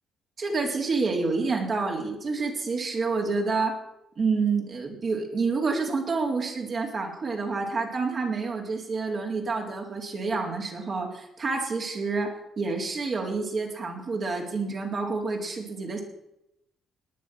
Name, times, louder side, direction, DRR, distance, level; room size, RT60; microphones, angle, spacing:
voice 1, 0.4-3.8 4.2-16.0, right 4 dB, 45° right, 0 dB, 3.8 m, -28 dB
18.5 x 9.7 x 6.2 m, 0.84 s
cardioid pair, 90°, 0 cm